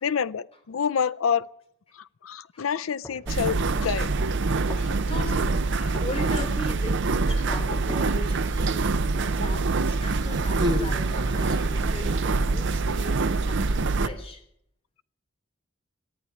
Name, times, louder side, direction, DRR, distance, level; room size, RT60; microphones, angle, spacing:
voice 1, 0.0-1.5 1.9-4.1 4.8-4.9 5.8-6.0, left 7 dB, 85° left, 0.5 m, -28 dB
sound 1, 3.0-3.8 4.5-5.2 5.9-6.7 7.5-8.3 9.0-9.6 10.3-11.2, equal, 10° left, 1.9 m, -43 dB
sound 2, 3.3-14.1, right 3 dB, 60° right, 0.7 m, -25 dB
voice 2, 5.1-5.6 6.0-8.8 9.2-14.4, left 1 dB, 30° left, 3.4 m, -38 dB
Human voice, 8.2-9.0 9.9-11.9 12.8-13.0, left 1 dB, 20° right, 1.4 m, -34 dB
14.5 x 9.7 x 9.9 m
head